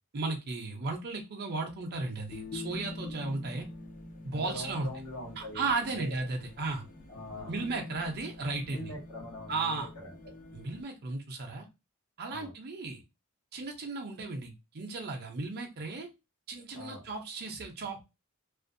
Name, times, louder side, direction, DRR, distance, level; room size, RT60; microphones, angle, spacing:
voice 1, 0.1-3.7 4.2-4.9 5.4-6.8 7.5-8.9 9.5-9.9 10.5-11.7 12.2-13.0 13.5-16.1 16.5-18.0, right 3 dB, 45° right, 2 dB, 0.5 m, -35 dB
sound 1, 2.2-10.8, left 2 dB, 35° left, 0.5 m, -45 dB
voice 2, 4.3-5.7 5.9-6.2 7.1-7.6 8.7-10.1 12.3-12.5 16.7-17.0, left 1 dB, 75° left, -2 dB, 1.2 m, -42 dB
2.4 x 2.1 x 2.5 m, 0.24 s
head